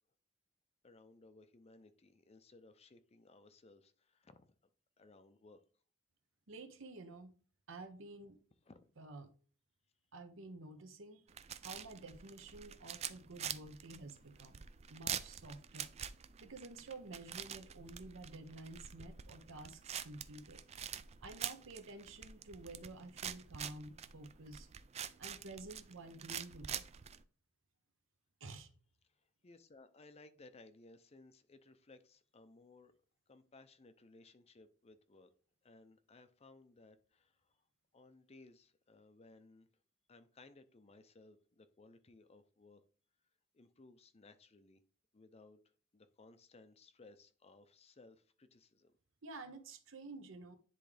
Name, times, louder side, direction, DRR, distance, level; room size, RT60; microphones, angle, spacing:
voice 1, 0.8-4.5 5.0-5.6 8.7-8.9 29.1-32.9 33.3-35.3 35.6-37.7 37.9-39.7 40.1-42.8 43.5-44.8 45.1-45.6 45.9-49.0, left 3 dB, 30° left, 0.5 m, -61 dB
voice 2, 6.5-7.4 7.7-8.4 9.0-9.3 10.1-11.3 11.6-14.6 14.9-16.0 16.4-20.6 21.2-24.7 25.2-26.8 28.4-28.7 49.2-50.6, right 2 dB, 65° right, 0.9 m, -51 dB
sound 1, 11.3-27.2, right 9 dB, 30° right, 0.3 m, -46 dB
10.0 x 3.6 x 3.3 m
head